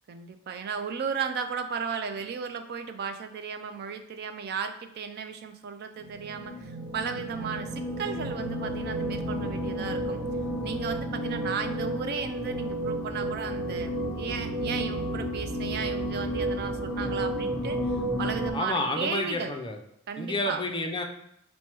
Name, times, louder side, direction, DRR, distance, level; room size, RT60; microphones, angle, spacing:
voice 1, 0.1-10.2 10.6-17.8 18.2-19.6 20.1-20.6, right 6 dB, 50° right, 7 dB, 0.4 m, -35 dB
sound 1, 6.0-18.5, right 1 dB, ahead, 1.1 m, -32 dB
voice 2, 18.5-19.8 20.2-21.0, left 2 dB, 25° left, 3 dB, 0.5 m, -30 dB
4.5 x 2.1 x 4.4 m, 0.77 s
head